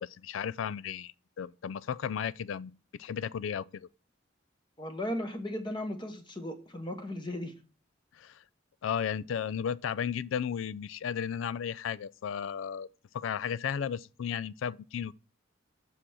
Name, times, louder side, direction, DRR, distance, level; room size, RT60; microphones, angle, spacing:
voice 1, 0.0-2.7 3.0-3.9 8.1-8.4 8.8-12.9 13.1-15.1, left 8 dB, 75° left, 0.3 m, -34 dB
voice 2, 4.8-7.5, left 1 dB, 25° left, 1.1 m, -36 dB
7.6 x 4.3 x 6.2 m
head